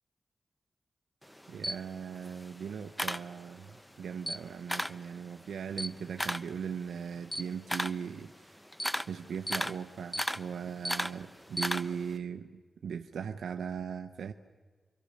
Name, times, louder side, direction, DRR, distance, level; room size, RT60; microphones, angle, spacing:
Camera, 1.2-3.8 4.1-5.1 5.4-12.1, equal, 5° left, 1.0 m, -36 dB
voice 1, 1.5-8.6 9.1-14.3, right 7 dB, 90° right, 7 dB, 0.9 m, -39 dB
29.0 x 24.5 x 6.6 m, 1.4 s
cardioid pair, 50°, 0 cm